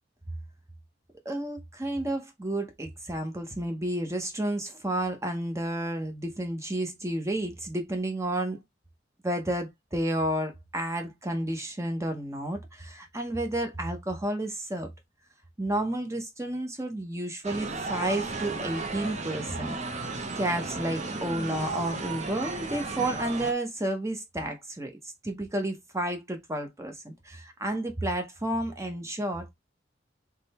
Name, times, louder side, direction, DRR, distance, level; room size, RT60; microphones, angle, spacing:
voice 1, 1.2-8.6 9.2-14.9 15.6-19.8 20.3-29.5, right 1 dB, 15° right, 0.8 m, -31 dB
sound 1, 17.4-23.5, right 3 dB, 40° right, 1.0 m, -34 dB
3.8 x 3.3 x 4.1 m
head